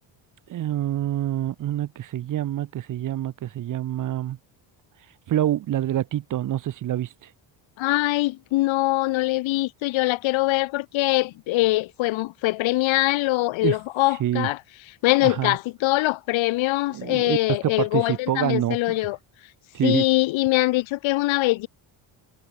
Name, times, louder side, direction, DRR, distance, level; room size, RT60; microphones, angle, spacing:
voice 1, 0.5-4.4 5.3-7.1 13.6-13.8 14.2-14.5 15.2-15.6 16.9-17.4 17.6-19.0 19.7-20.0, right 12 dB, 40° right, 0.7 m, -26 dB
voice 2, 7.8-14.6 15.0-19.2 19.8-21.7, left 19 dB, 70° left, 0.8 m, -23 dB
cardioid pair, 150°, 47 cm